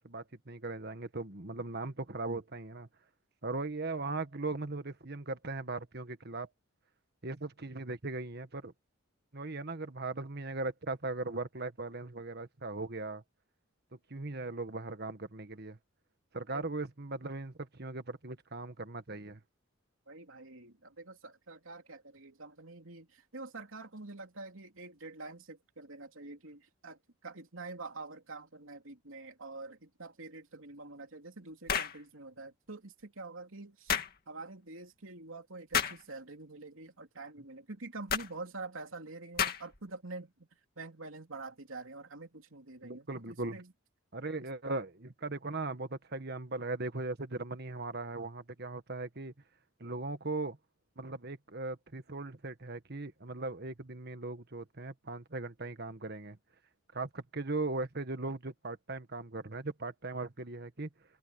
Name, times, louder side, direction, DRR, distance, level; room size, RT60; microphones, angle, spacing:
voice 1, 0.0-2.9 3.4-6.5 7.2-8.7 9.3-13.2 14.1-15.8 16.3-19.4 42.8-43.6 44.1-49.3 49.8-50.6 51.0-56.4 56.9-60.9, right 3 dB, 50° right, 1.6 m, -38 dB
voice 2, 20.1-40.5 40.8-43.7, right 3 dB, 75° right, 3.1 m, -46 dB
sound 1, 31.7-32.0 33.9-34.1 35.7-36.0 38.1-38.3 39.4-39.8, left 7 dB, 45° left, 2.2 m, -31 dB
head